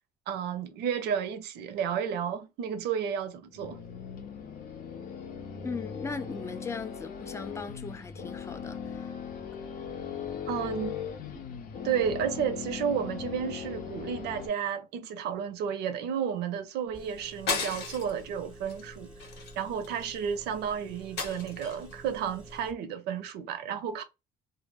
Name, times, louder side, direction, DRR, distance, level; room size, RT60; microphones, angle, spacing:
voice 1, 0.3-3.8 10.5-11.0 11.8-19.1 19.6-24.0, right 8 dB, 80° right, 0.6 m, -32 dB
sound 1, 3.5-14.5, left 7 dB, 60° left, 0.6 m, -39 dB
voice 2, 5.6-9.1, left 4 dB, 15° left, 0.3 m, -38 dB
Engine, 16.9-22.7, right 1 dB, 5° right, 0.8 m, -49 dB
sound 2, 17.5-18.2 18.7-18.9 19.2-20.2 21.2-21.9, left 4 dB, 80° left, 1.0 m, -34 dB
2.0 x 2.0 x 3.3 m
cardioid pair, 110°, 17 cm